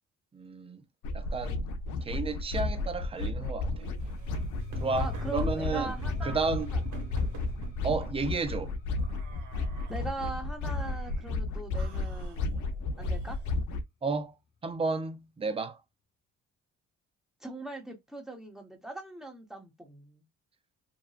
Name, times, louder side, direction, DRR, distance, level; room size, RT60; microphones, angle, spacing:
voice 1, 0.3-0.8 1.1-1.6 2.0-3.9 4.8-5.9 6.2-6.7 7.8-8.7 14.0-14.4 14.6-15.8, right 4 dB, 20° right, 0.4 m, -32 dB
sound 1, 1.0-13.8, left 3 dB, 75° left, 0.5 m, -33 dB
sound 2, 3.6-13.4, left 7 dB, 50° left, 1.1 m, -47 dB
sound 3, 3.7-8.1 9.0-10.3 10.7-11.3 11.8-13.6, right 5 dB, 75° right, 0.8 m, -48 dB
voice 2, 4.9-6.5 6.7-6.8 9.9-12.6 13.0-13.4 17.4-20.2, right 2 dB, ahead, 1.0 m, -41 dB
2.6 x 2.2 x 2.4 m
cardioid pair, 90°, 30 cm